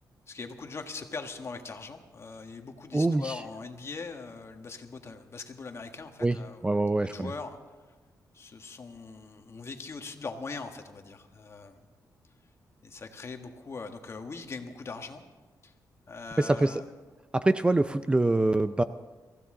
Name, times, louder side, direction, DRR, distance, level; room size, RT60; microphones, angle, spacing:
voice 1, 0.3-7.6 8.3-11.8 12.8-15.2 15.6-15.7 16.1-16.8, left 4 dB, 40° left, 5 dB, 1.5 m, -41 dB
voice 2, 2.9-3.4 6.2-6.4 6.6-7.3 16.4-16.8 17.3-18.8, right 2 dB, 15° right, 11 dB, 0.4 m, -24 dB
23.5 x 15.0 x 3.8 m, 1.3 s
wide cardioid pair, 115°, 7 cm